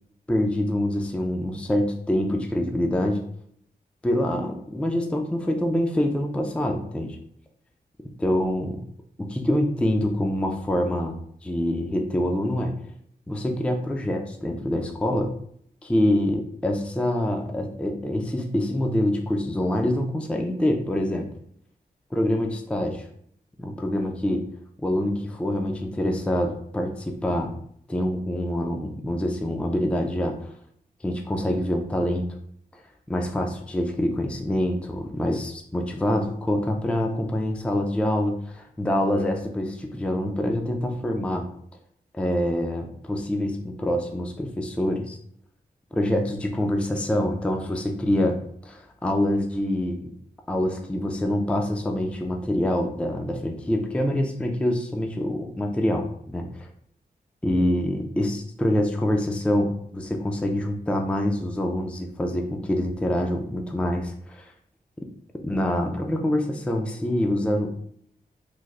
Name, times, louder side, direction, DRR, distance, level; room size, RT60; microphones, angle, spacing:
voice 1, 0.3-3.2 4.0-7.2 8.2-8.8 9.3-11.1 11.4-12.7 13.3-15.3 15.8-21.3 22.1-23.0 23.6-24.4 24.8-27.5 27.9-30.5 31.0-32.3 33.1-41.5 42.1-45.2 45.9-48.4 48.6-50.1 50.5-56.7 57.4-64.5 65.4-67.7, left 1 dB, 5° left, 3 dB, 0.4 m, -25 dB
3.2 x 2.0 x 3.5 m, 0.65 s
wide cardioid pair, 105°, 16 cm